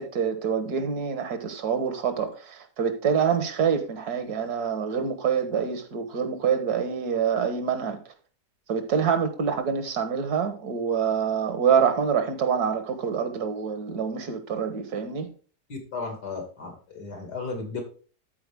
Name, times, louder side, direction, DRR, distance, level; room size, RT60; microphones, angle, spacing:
voice 1, 0.0-8.0 8.7-15.3, right 7 dB, 75° right, 1.8 m, -26 dB
voice 2, 15.7-17.8, left 4 dB, 85° left, 2.8 m, -35 dB
13.0 x 4.5 x 3.5 m
omnidirectional pair, 1.7 m